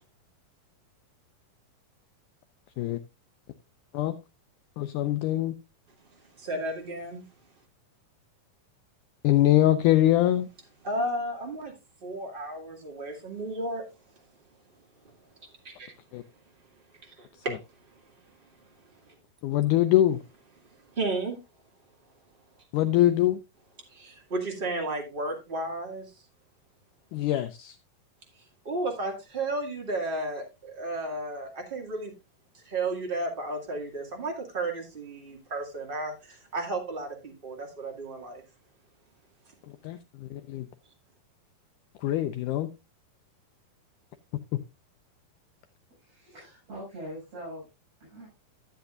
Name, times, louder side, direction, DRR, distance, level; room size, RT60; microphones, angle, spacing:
voice 1, 4.8-5.5 9.2-10.5 16.1-16.2 19.4-20.2 22.7-23.4 27.1-27.8 39.8-40.7 42.0-42.7, left 13 dB, 85° left, 1.8 m, -23 dB
voice 2, 6.2-7.2 10.8-11.7 12.0-13.8 15.6-15.9 17.0-17.6 18.8-19.1 20.9-21.4 23.9-26.0 28.6-32.1 32.5-38.4, right 2 dB, 20° right, 1.5 m, -33 dB
voice 3, 46.0-47.7 48.0-48.3, equal, 45° right, 7.3 m, -42 dB
13.0 x 8.2 x 2.5 m
omnidirectional pair, 4.2 m